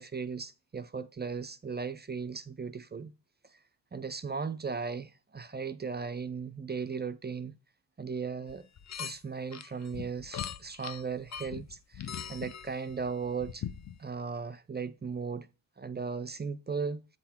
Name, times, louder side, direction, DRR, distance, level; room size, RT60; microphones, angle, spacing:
voice 1, 0.0-3.1 3.5-3.6 3.9-7.5 8.0-8.7 9.0-13.6 14.0-15.5 15.8-17.0, right 5 dB, 20° right, 0.4 m, -37 dB
sound 1, 8.5-9.2 9.5-14.0, left 8 dB, 35° left, 0.6 m, -41 dB
7.9 x 3.8 x 4.3 m
cardioid pair, 80°, 47 cm